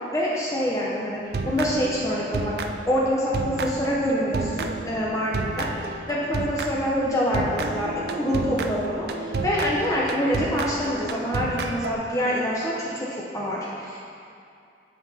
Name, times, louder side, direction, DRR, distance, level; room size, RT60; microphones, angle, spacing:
voice 1, 0.1-2.6 2.8-14.0, equal, 20° left, -5 dB, 0.8 m, -26 dB
sound 1, 1.2-3.1 3.3-6.9 7.3-11.9, right 3 dB, 60° right, 0.5 m, -31 dB
9.4 x 5.8 x 4.2 m, 2.4 s
head